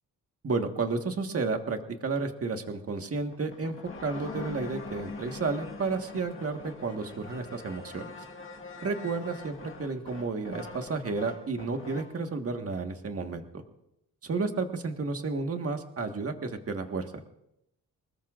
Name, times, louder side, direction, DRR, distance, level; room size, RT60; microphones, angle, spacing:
voice 1, 0.4-3.7 4.0-8.1 8.8-13.6 14.2-17.1, right 4 dB, 45° right, 5 dB, 1.6 m, -32 dB
sound 1, 3.3-12.2, left 4 dB, 35° left, 1.6 m, -43 dB
25.0 x 20.5 x 2.5 m, 0.81 s
wide cardioid pair, 135°, 34 cm